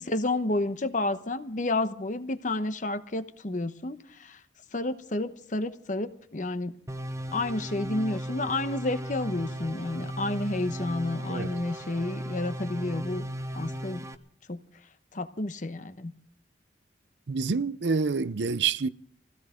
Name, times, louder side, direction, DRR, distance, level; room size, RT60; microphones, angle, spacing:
voice 1, 0.0-4.4 4.7-6.7 7.3-13.2 13.5-14.0 14.5-14.6 15.1-16.1, left 2 dB, 45° left, 1.0 m, -30 dB
sound 1, 6.9-14.1, equal, 15° right, 0.9 m, -36 dB
voice 2, 17.3-18.9, right 5 dB, 75° right, 0.6 m, -27 dB
23.0 x 16.0 x 3.7 m
head